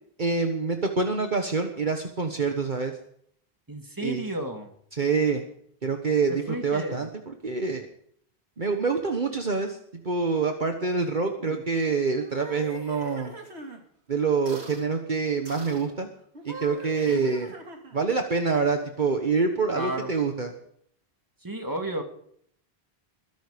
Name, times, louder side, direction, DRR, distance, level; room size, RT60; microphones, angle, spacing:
voice 1, 0.2-3.0 4.0-4.2 4.9-5.4 5.8-7.9 8.6-13.3 14.1-16.1 16.4-17.5 17.9-20.5, right 4 dB, 50° right, 5 dB, 1.4 m, -26 dB
voice 2, 3.7-4.7 6.3-7.0 11.4-11.6 17.0-17.3 19.7-20.1 21.4-22.0, right 1 dB, 20° right, 4 dB, 2.2 m, -33 dB
sound 1, 12.1-13.8 14.5-14.9 15.5-15.9 16.3-18.1, right 3 dB, 80° right, 2.7 m, -42 dB
21.5 x 11.5 x 5.2 m, 0.66 s
omnidirectional pair, 1.1 m